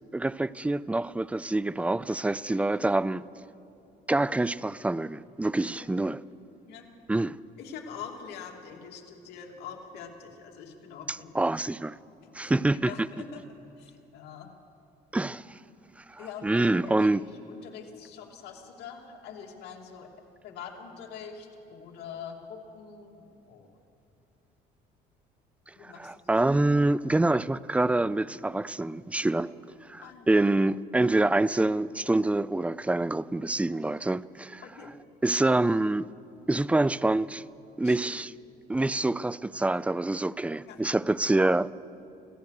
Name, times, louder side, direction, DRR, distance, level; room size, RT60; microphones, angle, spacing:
voice 1, 0.1-3.2 4.1-6.2 7.1-7.4 11.1-12.0 12.3-12.9 15.1-15.6 16.1-17.2 25.8-29.5 29.9-34.6 35.2-36.1 36.5-37.4 37.8-38.3 38.7-41.7, right 2 dB, 10° right, 0.4 m, -26 dB
voice 2, 7.6-11.3 12.2-13.4 13.8-14.5 16.2-17.1 17.4-20.1 20.4-23.7 25.8-26.3 30.0-30.4 34.6-34.9 37.8-38.3 40.7-40.8, left 7 dB, 80° left, 2.7 m, -44 dB
26.0 x 16.0 x 6.6 m
cardioid pair, 110°, 17 cm